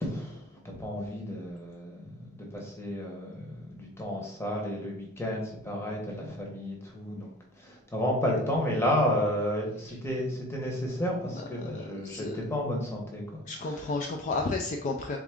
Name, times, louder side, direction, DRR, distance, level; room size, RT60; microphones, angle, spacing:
voice 1, 0.0-7.3 7.6-14.0, left 1 dB, 10° left, -1 dB, 0.9 m, -32 dB
voice 2, 11.7-12.4 13.5-15.2, left 3 dB, 35° left, 2 dB, 0.3 m, -32 dB
3.6 x 3.5 x 3.5 m, 0.73 s
head